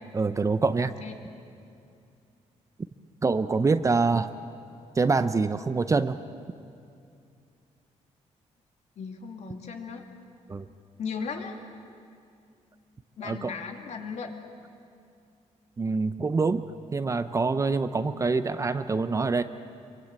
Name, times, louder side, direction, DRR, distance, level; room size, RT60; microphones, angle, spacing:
voice 1, 0.1-0.9 3.2-4.3 5.0-6.2 10.5-10.7 13.2-13.5 15.8-16.7 16.9-19.4, right 4 dB, 25° right, 11 dB, 0.7 m, -25 dB
voice 2, 0.8-1.2 9.0-10.0 11.0-11.6 13.2-14.3, left 5 dB, 65° left, 5 dB, 2.6 m, -36 dB
26.0 x 23.5 x 8.8 m, 2.5 s
cardioid pair, 135°, 12 cm